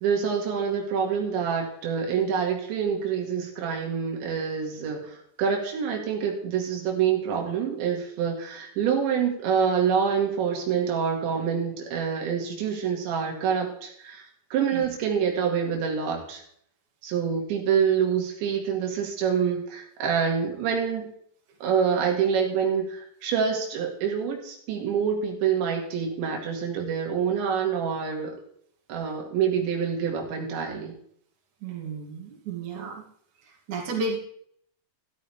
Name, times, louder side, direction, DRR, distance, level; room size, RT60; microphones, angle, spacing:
voice 1, 0.0-14.3 14.5-16.4 17.0-21.1 21.6-28.4 28.9-30.9, right 7 dB, 90° right, 1 dB, 4.3 m, -26 dB
voice 2, 31.6-33.0 33.4-34.2, right 3 dB, 50° right, -2 dB, 3.6 m, -33 dB
13.0 x 13.0 x 3.4 m, 0.64 s
omnidirectional pair, 5.1 m